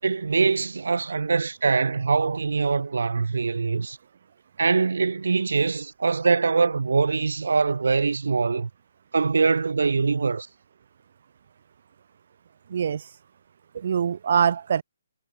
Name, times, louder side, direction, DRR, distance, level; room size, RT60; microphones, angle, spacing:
voice 1, 0.0-4.0 4.6-8.7 9.1-10.5, right 4 dB, 85° right, 7.0 m, -23 dB
voice 2, 12.7-13.1 13.7-14.8, right 7 dB, 35° right, 5.7 m, -23 dB
hypercardioid pair, 180°, 0 cm